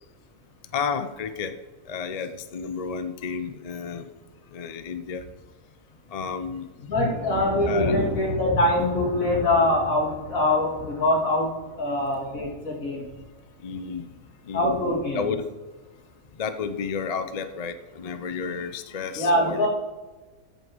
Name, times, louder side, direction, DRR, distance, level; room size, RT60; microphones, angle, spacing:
voice 1, 0.7-1.6 1.9-4.1 4.5-5.3 6.1-6.7 7.7-7.9 13.6-14.1 14.4-14.8 15.1-15.5 16.3-19.7, left 5 dB, 45° left, 10 dB, 0.5 m, -31 dB
voice 2, 6.8-13.1 14.5-15.2 19.2-19.7, left 1 dB, 65° left, -2 dB, 3.0 m, -24 dB
Thunder, 6.9-13.4 13.7-14.3 14.7-15.6, left 2 dB, 15° right, 1.6 m, -34 dB
14.0 x 5.6 x 4.7 m, 1.2 s
omnidirectional pair, 1.5 m